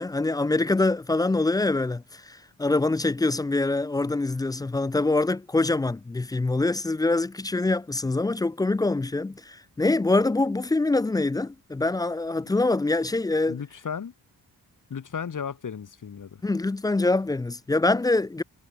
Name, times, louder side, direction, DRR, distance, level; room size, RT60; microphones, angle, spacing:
voice 1, 0.0-13.6 16.4-18.4, left 2 dB, 10° left, 0.3 m, -24 dB
voice 2, 13.5-14.1 14.9-16.4, left 7 dB, 55° left, 5.4 m, -34 dB
cardioid pair, 100°, 37 cm